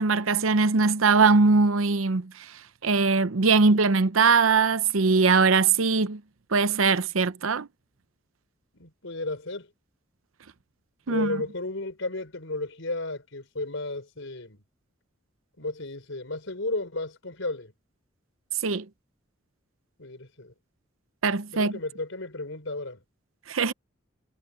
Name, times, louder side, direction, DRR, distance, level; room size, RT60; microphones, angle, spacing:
voice 1, 0.0-2.5 2.8-6.2 6.5-7.7 11.1-11.4 18.6-18.8 21.2-21.7 23.5-23.7, right 4 dB, 90° right, 0.8 m, -21 dB
voice 2, 8.8-9.7 11.1-14.6 15.6-17.7 20.0-20.5 21.5-23.0, left 2 dB, 75° left, 4.1 m, -33 dB
head